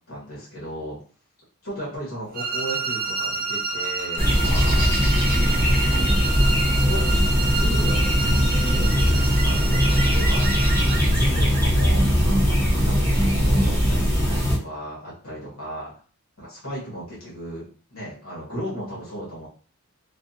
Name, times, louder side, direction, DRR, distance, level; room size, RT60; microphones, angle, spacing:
voice 1, 0.1-1.0 1.6-4.9 5.2-6.1 6.7-10.5 10.8-15.9 16.4-19.5, equal, 70° left, -7 dB, 1.5 m, -36 dB
sound 1, 2.3-11.1, right 4 dB, 40° right, 0.5 m, -29 dB
sound 2, 4.2-14.6, equal, 10° left, 0.9 m, -20 dB
3.3 x 2.2 x 2.7 m, 0.40 s
head